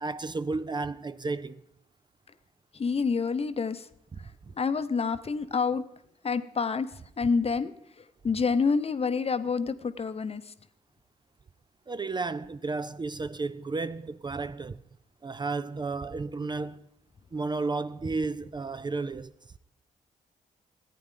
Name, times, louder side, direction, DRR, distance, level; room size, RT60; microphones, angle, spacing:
voice 1, 0.0-1.6 4.1-4.2 11.9-14.8 15.2-16.9 17.3-19.3, right 3 dB, 25° right, 0.4 m, -32 dB
voice 2, 2.7-3.9 4.5-5.8 6.2-6.9 7.2-7.7 8.2-10.5, left 5 dB, 40° left, 0.7 m, -27 dB
14.5 x 9.3 x 3.8 m
supercardioid pair, 50°, 16 cm